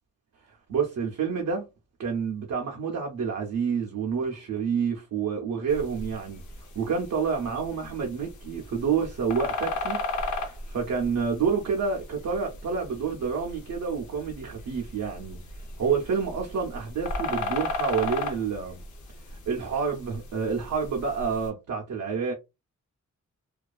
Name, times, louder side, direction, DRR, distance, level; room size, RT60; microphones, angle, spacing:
voice 1, 0.5-1.7 2.0-15.4 15.8-18.8 19.2-22.3, right 6 dB, 90° right, 0.6 m, -29 dB
sound 1, 5.7-21.5, left 3 dB, 85° left, 0.7 m, -36 dB
2.3 x 2.2 x 2.3 m
wide cardioid pair, 105°, 29 cm